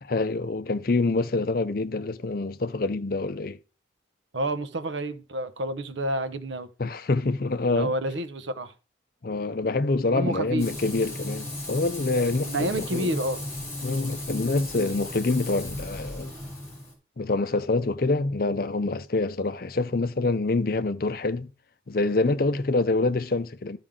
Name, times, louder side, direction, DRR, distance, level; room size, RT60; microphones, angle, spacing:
voice 1, 0.0-3.6 6.8-7.9 9.2-13.1 13.8-16.3 17.2-21.5 21.9-23.8, left 3 dB, 50° left, 0.5 m, -26 dB
voice 2, 4.3-6.7 7.7-8.7 10.1-10.7 12.4-13.4, right 1 dB, 80° right, 0.8 m, -29 dB
Frying (food), 10.6-16.9, left 1 dB, 15° left, 3.3 m, -35 dB
13.0 x 5.2 x 3.7 m
head